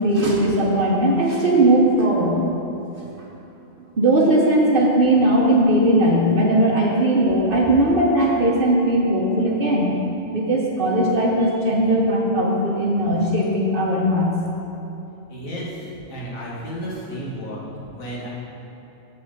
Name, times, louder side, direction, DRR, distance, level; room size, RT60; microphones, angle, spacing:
voice 1, 0.0-2.4 4.0-9.9 10.3-14.4, right 1 dB, 45° right, -2 dB, 1.0 m, -18 dB
voice 2, 15.3-15.8 16.1-17.6 18.0-18.3, equal, 75° left, -6 dB, 2.0 m, -32 dB
7.8 x 4.4 x 6.4 m, 2.9 s
omnidirectional pair, 1.4 m